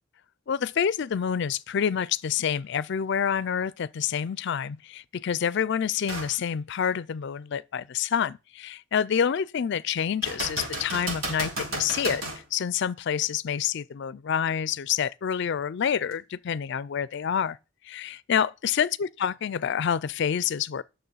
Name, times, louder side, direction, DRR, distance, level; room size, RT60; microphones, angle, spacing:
voice 1, 0.5-12.2 12.5-17.6 17.9-20.8, left 8 dB, 60° left, 0.4 m, -27 dB
sound 1, 6.1-6.4 6.9-7.0 10.2-12.4 16.1-16.2, right 2 dB, 90° right, 4.5 m, -33 dB
9.3 x 6.7 x 5.6 m
head